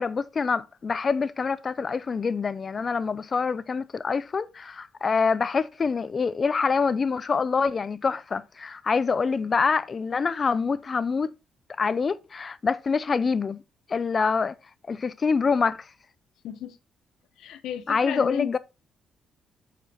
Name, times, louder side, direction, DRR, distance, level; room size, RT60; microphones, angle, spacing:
voice 1, 0.0-11.3 11.8-13.6 13.9-14.6 14.9-15.8 17.9-18.6, left 5 dB, 40° left, 0.5 m, -25 dB
voice 2, 16.4-16.8 17.4-18.6, left 11 dB, 80° left, 0.9 m, -34 dB
7.9 x 5.0 x 4.1 m
cardioid pair, 90°, 0 cm